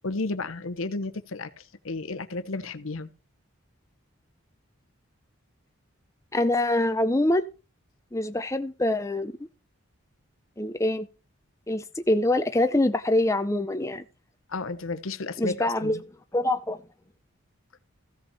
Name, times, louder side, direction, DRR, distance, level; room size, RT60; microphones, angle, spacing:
voice 1, 0.0-3.1 14.5-16.0, left 3 dB, 75° left, 0.9 m, -32 dB
voice 2, 6.3-7.5 8.1-9.3 10.6-11.1 11.7-14.0 15.4-16.0 16.3-16.8, left 1 dB, 15° left, 0.5 m, -24 dB
15.0 x 5.4 x 5.6 m
head